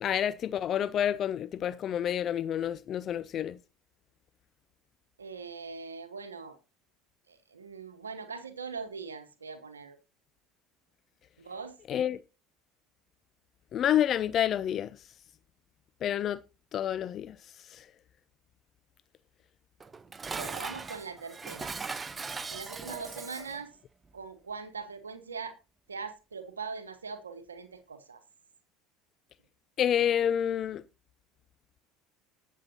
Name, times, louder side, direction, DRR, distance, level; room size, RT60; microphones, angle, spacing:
voice 1, 0.0-3.6 11.9-12.2 13.7-14.9 16.0-16.4 16.7-17.4 17.7-17.8 29.8-30.8, left 10 dB, 45° left, 0.5 m, -28 dB
voice 2, 5.2-6.6 7.3-10.0 11.4-11.8 20.3-21.7 22.5-23.7 24.1-25.6 25.9-28.2, right 5 dB, 90° right, 1.0 m, -41 dB
Dishes pots and pans, 19.8-23.6, right 4 dB, 25° right, 0.7 m, -39 dB
20.0 x 7.4 x 2.8 m
hypercardioid pair, 70°, 0 cm